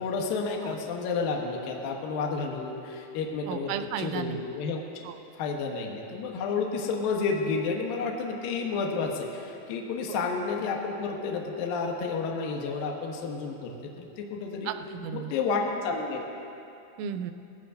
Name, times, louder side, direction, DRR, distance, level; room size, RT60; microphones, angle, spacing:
voice 1, 0.0-4.9 5.3-14.7 15.1-16.3, left 4 dB, 80° left, 0 dB, 2.1 m, -31 dB
voice 2, 3.5-4.4 5.0-5.2 10.1-10.2 14.7-15.3 17.0-17.3, right 8 dB, 90° right, 9 dB, 3.1 m, -34 dB
19.0 x 15.0 x 2.6 m, 2.7 s
omnidirectional pair, 5.4 m